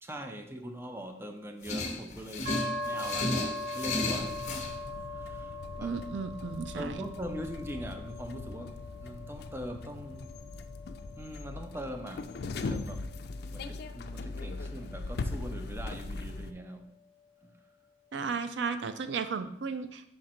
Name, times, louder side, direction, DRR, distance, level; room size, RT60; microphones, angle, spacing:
voice 1, 0.0-2.6 2.9-3.4 3.7-4.4 5.1-6.0 6.8-10.3 11.2-13.1 13.5-16.9 17.4-17.5, equal, 15° right, 5 dB, 0.6 m, -42 dB
sound 1, 1.6-4.7, left 2 dB, 40° left, 0.9 m, -33 dB
sound 2, 2.5-16.1, left 1 dB, 40° right, 2.2 m, -42 dB
sound 3, 4.1-16.5, left 3 dB, 60° left, 0.4 m, -40 dB
voice 2, 5.8-7.0 18.1-20.1, right 5 dB, 70° right, 10 dB, 0.4 m, -34 dB
5.4 x 5.1 x 4.3 m, 0.70 s
head